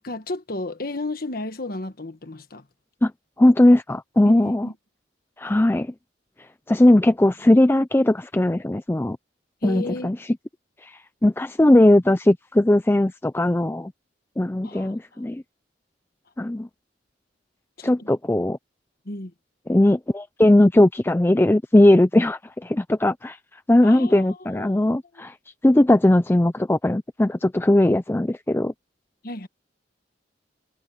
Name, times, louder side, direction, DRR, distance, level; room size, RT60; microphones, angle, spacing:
voice 1, 0.0-2.6 4.2-4.7 9.6-10.1 14.6-15.2 17.8-18.1 19.0-19.3 23.8-24.9 29.2-29.5, left 2 dB, 50° left, 1.4 m, -33 dB
voice 2, 3.4-4.7 5.4-5.9 6.7-9.2 9.6-10.2 10.8-13.9 14.4-15.4 16.4-16.7 17.8-18.6 19.7-23.4 23.7-25.3 25.6-28.7, left 1 dB, 10° left, 0.4 m, -18 dB
head